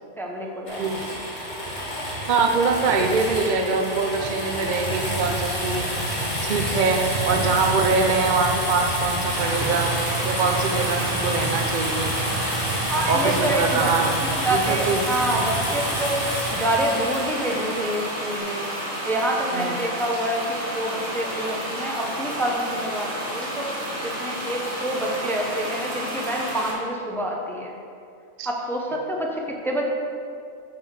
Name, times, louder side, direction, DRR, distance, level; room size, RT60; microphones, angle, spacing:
voice 1, 0.2-0.9 12.9-13.9 14.3-16.2 16.5-18.6 19.0-23.7 24.0-27.7 28.4-29.8, right 1 dB, ahead, 0 dB, 0.7 m, -27 dB
sound 1, 0.7-18.4, right 1 dB, 35° left, 1.9 m, -28 dB
voice 2, 2.3-9.9 10.2-12.2 13.1-14.2 14.5-15.1 19.5-19.8 28.4-28.5, right 4 dB, 50° right, 3 dB, 0.6 m, -24 dB
sound 2, 9.3-26.7, right 1 dB, 25° right, 1.7 m, -31 dB
9.2 x 4.2 x 6.4 m, 2.4 s
omnidirectional pair, 1.3 m